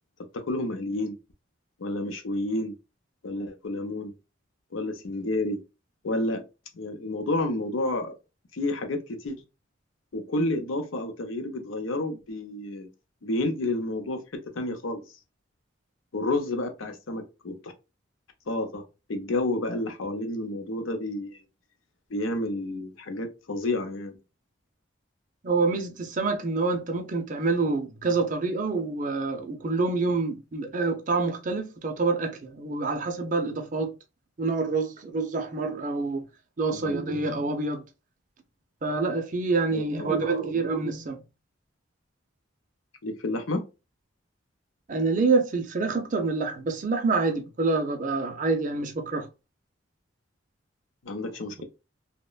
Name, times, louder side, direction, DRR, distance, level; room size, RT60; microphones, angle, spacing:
voice 1, 0.3-1.2 1.8-2.7 3.2-4.1 4.7-5.6 6.0-6.4 6.7-8.1 8.5-9.4 10.1-12.9 13.2-15.0 16.1-17.7 18.5-18.8 19.1-21.4 22.1-24.2 36.7-37.0 39.7-40.2 40.5-40.6 43.0-43.6 51.0-51.6, left 2 dB, 90° left, 0.6 m, -30 dB
voice 2, 25.4-33.9 34.4-36.2 36.6-37.8 38.8-41.2 44.9-49.3, right 3 dB, 40° right, 0.5 m, -27 dB
2.9 x 2.1 x 2.3 m
head